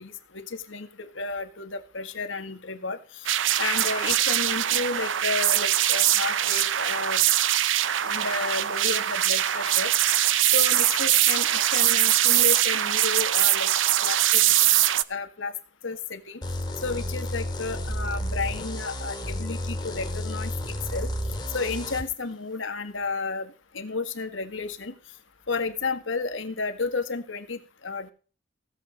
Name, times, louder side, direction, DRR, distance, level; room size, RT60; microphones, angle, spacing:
voice 1, 0.0-3.3 3.6-7.2 8.0-9.9 10.5-13.7 14.0-14.5 15.1-15.5 15.8-16.4 16.8-21.1 21.5-24.9 25.5-28.1, left 4 dB, 90° left, 8 dB, 1.8 m, -32 dB
sound 1, 3.2-15.0, right 12 dB, 80° right, 0.7 m, -22 dB
sound 2, 16.4-22.0, equal, 20° left, 3.4 m, -32 dB
16.5 x 8.0 x 5.2 m, 0.37 s
head